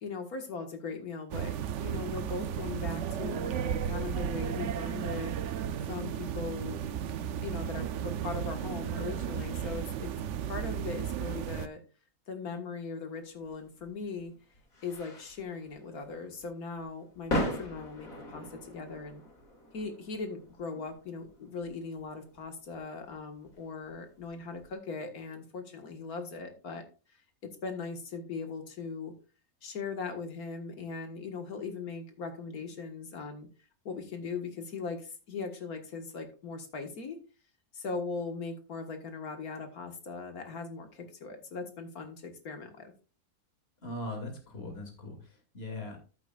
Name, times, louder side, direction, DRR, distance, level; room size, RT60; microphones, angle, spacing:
voice 1, 0.0-5.3 5.8-6.8 7.2-10.1 10.5-11.8 12.3-14.3 14.8-19.2 19.7-26.8 27.1-27.2 27.6-29.1 29.6-33.5 33.9-37.2 37.7-42.9, left 4 dB, 85° left, 5 dB, 2.1 m, -39 dB
sound 1, 1.3-11.7, right 9 dB, 65° right, 0.9 m, -34 dB
sound 2, 13.4-24.7, left 1 dB, 70° left, 3.0 m, -40 dB
voice 2, 43.8-46.0, left 2 dB, 45° left, 2 dB, 2.7 m, -40 dB
13.5 x 8.2 x 2.4 m, 0.34 s
omnidirectional pair, 1.5 m